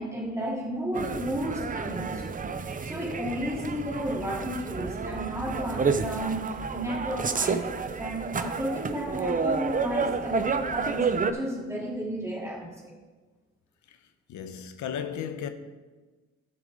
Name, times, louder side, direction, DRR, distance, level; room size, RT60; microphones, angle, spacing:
voice 1, 0.0-2.3 2.6-12.9, equal, 10° right, 3.1 m, -33 dB
sound 1, 0.9-11.3, right 5 dB, 25° right, 0.6 m, -30 dB
voice 2, 14.3-15.5, left 8 dB, 70° left, 0.9 m, -35 dB
12.0 x 6.9 x 3.8 m
cardioid pair, 90°, 30 cm